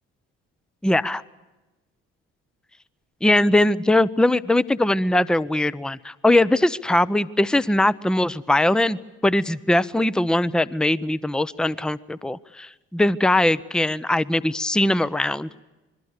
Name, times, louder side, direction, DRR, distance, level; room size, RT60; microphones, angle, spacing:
voice 1, 0.8-1.2 3.2-15.6, left 1 dB, ahead, 18 dB, 0.7 m, -21 dB
28.0 x 22.0 x 6.6 m, 1.1 s
figure-of-eight pair, 45°, 36 cm